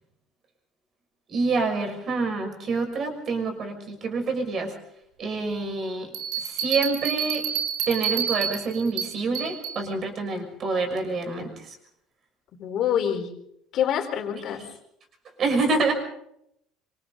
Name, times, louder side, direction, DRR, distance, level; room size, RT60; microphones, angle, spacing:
voice 1, 1.3-4.7 5.2-6.1 6.4-7.4 7.9-11.5 15.4-15.9, right 3 dB, 35° right, 4 dB, 6.1 m, -27 dB
Bell, 6.1-9.8, right 9 dB, 80° right, 3.3 m, -29 dB
voice 2, 12.5-13.3 13.7-14.6, left 9 dB, 45° left, 4 dB, 4.3 m, -26 dB
27.5 x 25.5 x 4.0 m, 0.74 s
cardioid pair, 155°, 0 cm